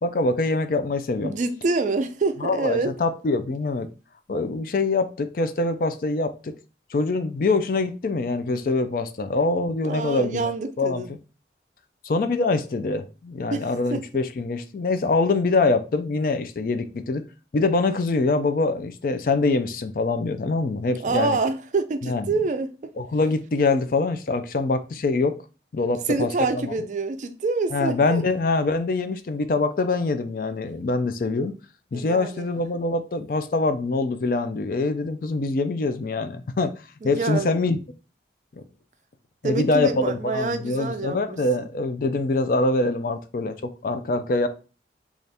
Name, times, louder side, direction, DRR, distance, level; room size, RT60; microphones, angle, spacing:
voice 1, 0.0-1.3 2.4-3.9 4.3-6.5 6.9-10.5 10.8-11.2 12.0-17.2 17.5-21.4 22.0-22.3 23.0-25.4 25.7-26.7 27.7-31.5 31.9-36.7 37.0-37.8 39.4-44.5, left 3 dB, 50° left, 0.4 m, -24 dB
voice 2, 1.2-2.9 9.8-11.1 13.5-14.1 21.0-22.8 26.1-28.2 31.9-32.5 37.0-37.6 39.4-41.7, right 3 dB, 45° right, 0.4 m, -27 dB
4.0 x 2.4 x 3.3 m
head